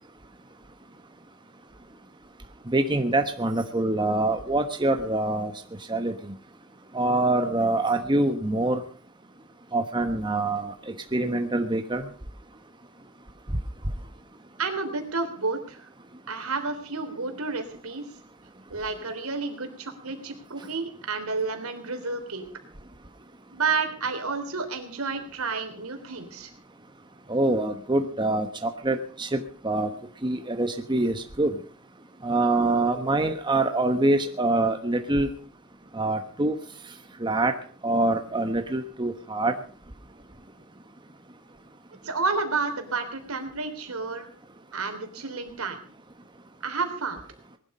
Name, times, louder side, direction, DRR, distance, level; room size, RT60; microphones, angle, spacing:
voice 1, 2.7-5.5 5.9-6.1 6.9-8.8 9.7-10.7 11.1-12.0 27.3-29.9 30.2-31.5 32.2-35.3 35.9-36.5 37.2-37.5 37.8-39.5, right 2 dB, 20° right, 6 dB, 1.1 m, -25 dB
voice 2, 14.6-15.9 16.3-18.0 18.7-22.4 23.5-26.5 42.0-44.3 44.7-45.9 46.6-47.2, right 4 dB, 80° right, 6 dB, 3.2 m, -30 dB
19.5 x 12.0 x 5.4 m, 0.44 s
head